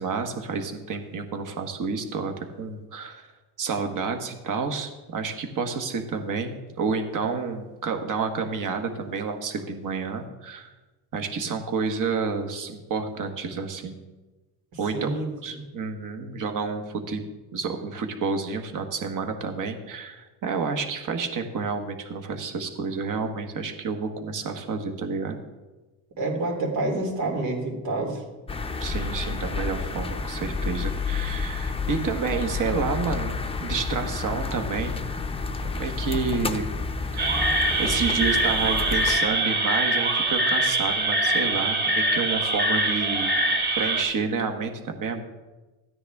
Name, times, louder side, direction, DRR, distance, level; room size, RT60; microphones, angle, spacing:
voice 1, 0.0-3.3 3.6-10.7 11.1-14.0 14.8-15.2 15.4-17.2 17.5-25.4 28.8-35.0 35.6-36.7 37.1-45.2, right 5 dB, 45° right, 6 dB, 1.4 m, -30 dB
voice 2, 14.9-15.6 26.2-28.2, right 2 dB, 70° right, -1 dB, 3.4 m, -28 dB
sound 1, 28.5-39.2, left 4 dB, 15° left, 0.6 m, -30 dB
sound 2, 37.2-44.0, right 2 dB, 25° right, 2.5 m, -23 dB
14.0 x 9.7 x 3.6 m, 1.2 s
cardioid pair, 115°, 45 cm